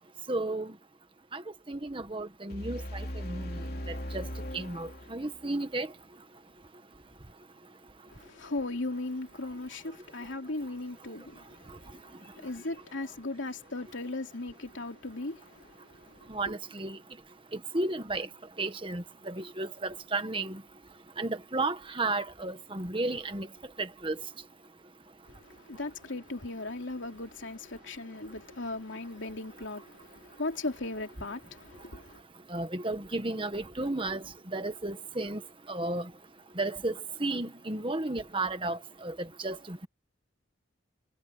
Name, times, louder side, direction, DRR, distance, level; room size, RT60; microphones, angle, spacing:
voice 1, 0.3-0.7 1.3-1.4 1.7-3.5 4.1-4.2 4.5-5.9 16.3-17.0 17.7-18.3 18.6-20.6 21.2-23.5 23.8-24.1 32.5-34.2 34.5-35.4 35.7-36.0 36.6-36.9 37.2-39.1 39.4-39.9, right 2 dB, 25° right, 1.5 m, -33 dB
sound 1, 2.5-5.5, equal, 50° left, 3.3 m, -39 dB
voice 2, 8.2-11.4 12.4-15.4 25.7-32.1, left 2 dB, 75° left, 2.8 m, -37 dB
head